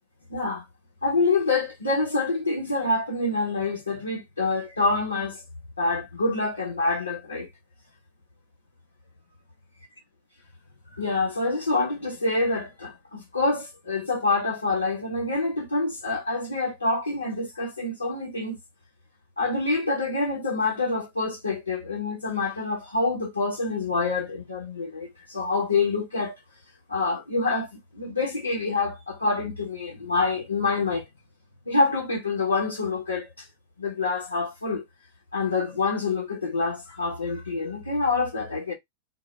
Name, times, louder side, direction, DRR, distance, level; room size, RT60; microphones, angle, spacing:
voice 1, 0.3-0.6 1.0-5.4 5.8-7.5 11.0-18.6 19.4-26.3 26.9-31.0 31.7-33.5 33.8-34.8 35.3-38.7, left 3 dB, 80° left, 0.9 m, -26 dB
2.2 x 2.1 x 3.0 m
figure-of-eight pair, 90°, 0 cm